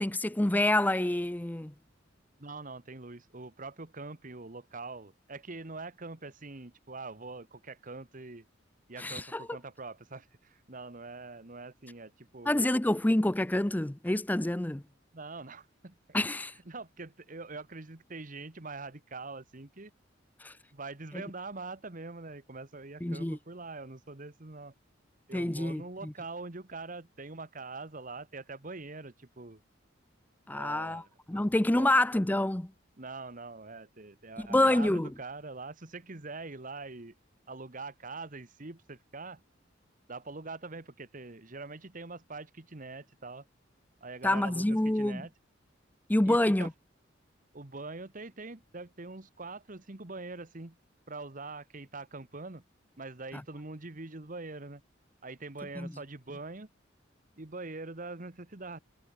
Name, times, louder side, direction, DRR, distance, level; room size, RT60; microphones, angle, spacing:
voice 1, 0.0-1.7 9.0-9.5 12.5-14.8 16.1-16.5 20.4-20.5 23.0-23.4 25.3-26.1 30.5-31.0 31.3-32.7 34.4-35.1 44.2-45.2 46.1-46.7 55.8-55.9, left 1 dB, 10° left, 0.5 m, -27 dB
voice 2, 2.4-8.4 8.9-12.8 15.1-15.9 16.6-19.9 20.7-24.7 25.3-29.6 30.5-32.1 33.0-37.1 37.5-39.4 40.1-43.4 44.0-45.3 46.2-46.7 47.5-50.7 51.1-52.6 53.0-54.8 55.2-56.7 57.4-58.8, right 3 dB, 45° right, 1.5 m, -43 dB
head